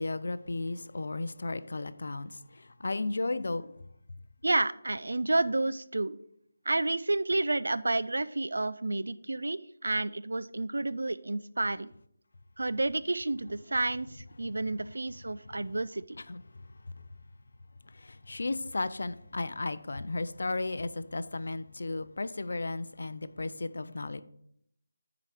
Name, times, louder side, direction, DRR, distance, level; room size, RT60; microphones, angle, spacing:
voice 1, 0.0-3.7 16.3-16.4 17.9-24.2, left 2 dB, 65° left, 0.5 m, -34 dB
voice 2, 4.4-6.2 6.7-11.9 12.6-16.2, right 2 dB, 85° right, 0.4 m, -30 dB
7.5 x 4.9 x 5.0 m
figure-of-eight pair, 175°, 0 cm